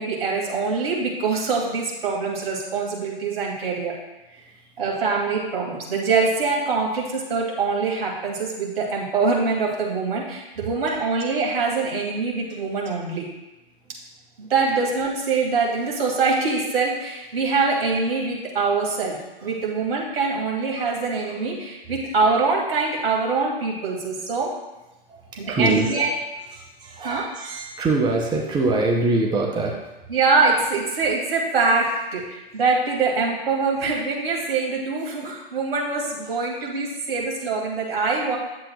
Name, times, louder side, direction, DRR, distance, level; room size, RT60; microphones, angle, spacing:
voice 1, 0.0-4.0 4.8-13.3 14.4-24.5 25.4-26.1 27.0-27.2 30.1-38.4, right 4 dB, 70° right, -2 dB, 2.7 m, -24 dB
voice 2, 25.1-26.0 26.5-29.8, right 2 dB, 15° right, 0 dB, 0.8 m, -24 dB
9.9 x 7.6 x 2.4 m, 1.0 s
hypercardioid pair, 120°, 30 cm